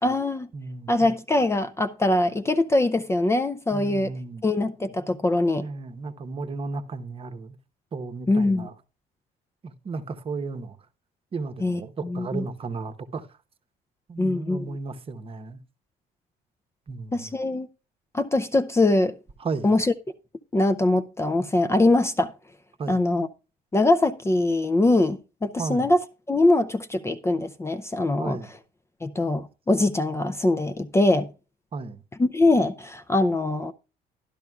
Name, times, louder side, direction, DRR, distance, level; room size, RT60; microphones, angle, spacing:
voice 1, 0.0-0.5 0.9-4.1 4.4-5.7 8.3-8.7 11.6-12.5 14.2-14.7 17.1-17.7 18.1-19.1 19.6-19.9 20.5-22.3 22.9-23.3 23.7-28.4 29.0-31.3 32.2-33.7, left 2 dB, 15° left, 0.5 m, -22 dB
voice 2, 0.5-0.9 3.7-4.4 5.6-7.6 7.9-8.7 9.6-10.8 11.3-13.3 14.1-15.6 16.9-17.4 19.4-19.7 22.8-23.0 25.6-25.9 28.2-28.5 31.7-32.0, right 4 dB, 35° right, 0.9 m, -34 dB
12.0 x 11.5 x 2.3 m
cardioid pair, 110°, 17 cm